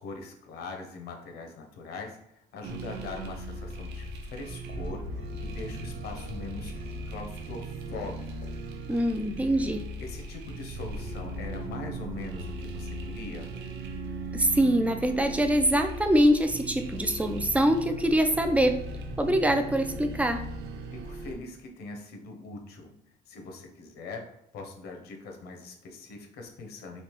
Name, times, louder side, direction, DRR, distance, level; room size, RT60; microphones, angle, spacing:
voice 1, 0.0-6.7 7.1-8.5 9.5-9.6 10.0-13.5 21.0-22.9 23.3-24.3 24.5-27.0, left 3 dB, 75° left, 3 dB, 0.8 m, -41 dB
sound 1, 2.6-21.3, right 1 dB, 90° right, 0.5 m, -38 dB
voice 2, 8.9-9.8 14.3-18.8 19.2-20.4, equal, 10° right, 7 dB, 0.3 m, -24 dB
3.3 x 2.8 x 3.0 m, 0.79 s
cardioid pair, 110°, 17 cm